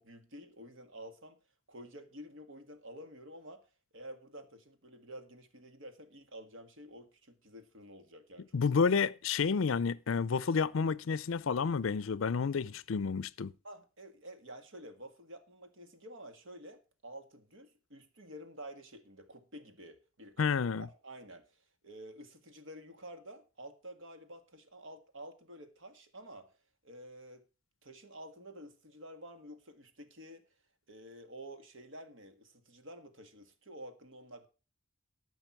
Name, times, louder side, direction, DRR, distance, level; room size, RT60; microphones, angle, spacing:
voice 1, 0.0-1.4 1.7-3.6 3.9-8.6 13.6-20.5 20.8-26.5 26.8-27.4 27.8-30.5 30.9-34.5, right 1 dB, 65° right, 1.7 m, -50 dB
voice 2, 8.5-13.5 20.4-20.9, left 5 dB, 70° left, 0.5 m, -30 dB
13.5 x 5.8 x 5.9 m
head